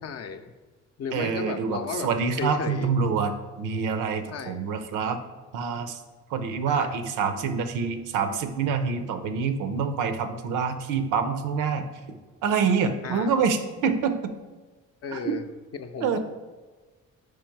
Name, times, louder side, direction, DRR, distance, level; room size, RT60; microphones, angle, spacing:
voice 1, 0.0-0.5 1.0-2.1 2.4-2.9 4.3-4.7 6.7-6.9 13.0-13.3 15.0-15.4 15.7-16.2, left 6 dB, 55° left, 8 dB, 0.5 m, -34 dB
voice 2, 1.1-5.2 5.5-6.0 6.3-11.9 12.4-14.3 15.1-15.4 16.0-16.2, right 5 dB, 90° right, 8 dB, 0.6 m, -26 dB
4.8 x 4.6 x 4.5 m, 1.3 s
cardioid pair, 90°, 30 cm